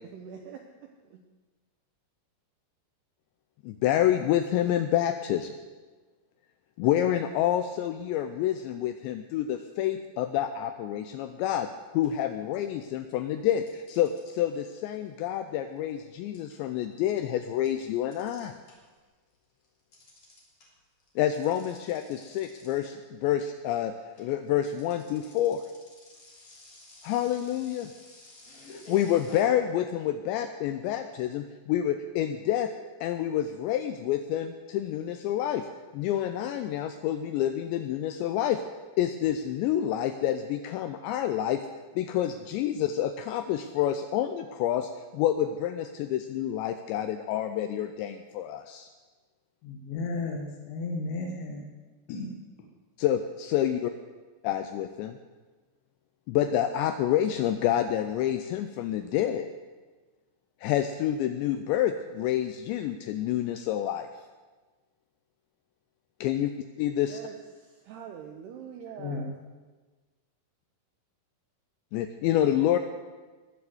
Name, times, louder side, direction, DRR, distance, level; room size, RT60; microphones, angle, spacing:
voice 1, 0.0-1.2 67.1-69.4, right 7 dB, 80° right, 4 dB, 2.4 m, -44 dB
voice 2, 3.6-5.5 6.8-11.7 11.9-18.5 21.2-23.9 24.2-25.6 27.0-27.9 28.7-32.7 33.0-35.7 35.9-38.6 39.0-41.6 42.0-48.9 53.0-53.9 54.4-55.2 56.3-59.5 60.6-64.1 66.2-66.5 66.8-67.2 71.9-72.8, left 11 dB, 85° left, 8 dB, 2.5 m, -28 dB
sound 1, 11.5-11.7 12.0-13.0 13.7-19.0 19.3-29.5, left 2 dB, 35° left, 3.4 m, -50 dB
voice 3, 49.6-51.7 52.1-52.3 69.0-69.3, left 3 dB, 70° left, 0 dB, 3.6 m, -34 dB
20.0 x 7.3 x 7.8 m, 1.3 s
omnidirectional pair, 5.8 m